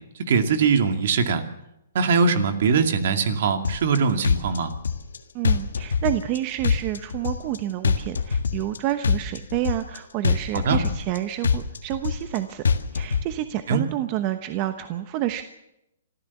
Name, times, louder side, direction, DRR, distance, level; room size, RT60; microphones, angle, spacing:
voice 1, 0.3-1.4 1.9-4.7 10.5-10.8 13.7-13.8, right 5 dB, 60° right, 7 dB, 2.4 m, -21 dB
sound 1, 3.6-4.0 4.2-5.2 5.4-6.4 6.6-7.6 7.8-8.8 9.0-10.0 10.2-11.2 11.4-12.4 12.6-13.2, left 6 dB, 85° left, 1.6 m, -23 dB
voice 2, 5.3-12.6 12.9-15.4, right 13 dB, 35° right, 10 dB, 1.0 m, -29 dB
26.0 x 14.0 x 7.2 m, 0.85 s
hypercardioid pair, 145°, 0 cm